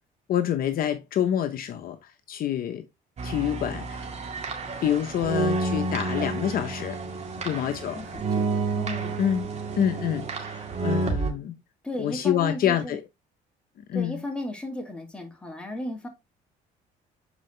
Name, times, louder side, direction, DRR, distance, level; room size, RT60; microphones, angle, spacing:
voice 1, 0.3-2.0 2.3-2.8 3.2-4.0 4.8-7.0 7.4-8.0 9.2-9.5 9.8-11.5 12.0-13.0 13.9-14.2, left 10 dB, 60° left, 0.8 m, -27 dB
sound 1, 3.2-11.3, right 3 dB, 40° right, 2.0 m, -30 dB
voice 2, 7.3-9.2 11.8-13.0 13.9-16.1, left 1 dB, 5° left, 2.3 m, -35 dB
7.4 x 4.7 x 3.2 m
cardioid pair, 110°, 17 cm